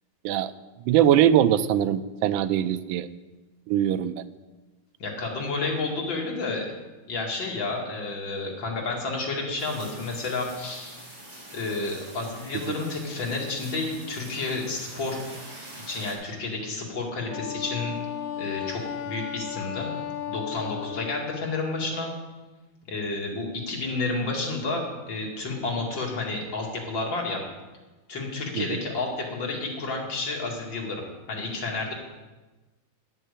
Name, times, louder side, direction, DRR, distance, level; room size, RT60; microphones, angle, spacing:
voice 1, 0.9-3.1 3.7-4.1 28.6-28.7, right 10 dB, 80° right, 12 dB, 1.3 m, -21 dB
voice 2, 5.0-6.7 7.1-11.0 11.5-15.2 15.9-17.9 18.4-19.9 20.3-22.1 22.9-27.4 28.1-31.9, left 3 dB, 65° left, -1 dB, 3.0 m, -30 dB
sound 1, 9.6-16.1, right 1 dB, 20° right, 5.4 m, -44 dB
Wind instrument woodwind instrument, 17.3-21.5, left 10 dB, 85° left, 1.5 m, -34 dB
10.0 x 7.6 x 8.3 m, 1.2 s
omnidirectional pair, 2.2 m